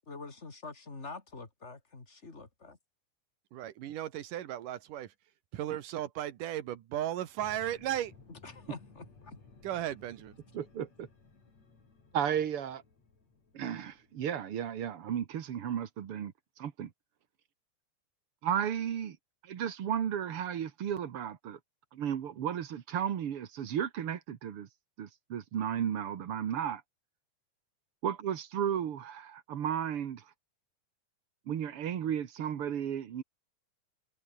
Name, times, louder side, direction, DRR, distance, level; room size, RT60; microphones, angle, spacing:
voice 1, 0.0-2.8 8.3-9.4, left 3 dB, 20° left, 3.1 m, -46 dB
voice 2, 3.5-5.1 5.5-8.1 9.6-10.4, right 12 dB, 85° right, 3.0 m, -35 dB
sound 1, 7.4-14.1, left 4 dB, 55° left, 6.6 m, -58 dB
voice 3, 10.5-11.1 12.1-12.8 13.5-16.9 18.4-19.2 19.4-21.6 21.9-24.7 25.0-26.8 28.0-30.2 31.5-33.2, right 9 dB, 55° right, 2.0 m, -34 dB
omnidirectional pair, 3.7 m